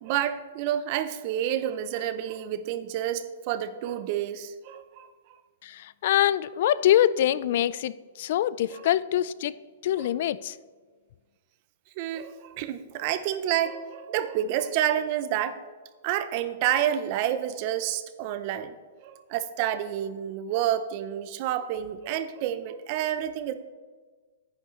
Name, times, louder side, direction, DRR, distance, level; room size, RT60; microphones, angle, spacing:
voice 1, 0.0-5.1 8.7-8.9 10.0-10.1 12.0-15.6 16.0-18.7 19.0-23.5, right 11 dB, 45° right, 12 dB, 0.6 m, -29 dB
voice 2, 6.0-7.9 8.2-9.5 9.8-10.5, left 12 dB, 60° left, 18 dB, 0.3 m, -24 dB
10.0 x 9.5 x 3.2 m, 1.5 s
hypercardioid pair, 135°, 0 cm